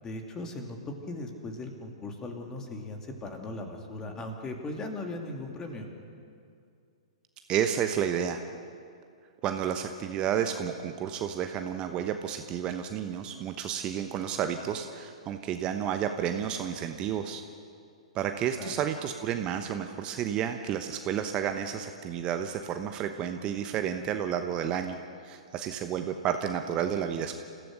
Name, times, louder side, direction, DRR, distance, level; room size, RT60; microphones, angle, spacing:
voice 1, 0.0-5.9 18.6-18.7, left 2 dB, 20° left, 2 dB, 2.8 m, -38 dB
voice 2, 7.5-8.4 9.4-17.4 18.1-25.0 25.2-27.3, right 9 dB, 25° right, 7 dB, 1.0 m, -31 dB
29.0 x 15.5 x 6.7 m, 2.4 s
figure-of-eight pair, 110°, 3 cm